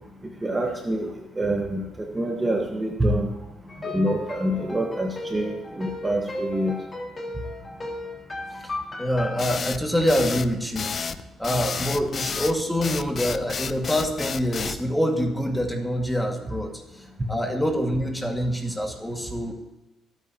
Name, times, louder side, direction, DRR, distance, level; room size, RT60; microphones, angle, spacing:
voice 1, 0.4-1.1 1.4-3.3 3.8-6.8, right 1 dB, 20° right, 1 dB, 1.6 m, -26 dB
sound 1, 3.7-9.5, left 2 dB, 30° left, 3.3 m, -35 dB
voice 2, 9.0-10.9 11.4-16.8 17.3-19.5, equal, 5° left, 2 dB, 2.2 m, -25 dB
sound 2, 9.4-14.8, left 6 dB, 45° left, 0.6 m, -31 dB
23.0 x 9.1 x 3.0 m, 1.0 s
cardioid pair, 90°, 0 cm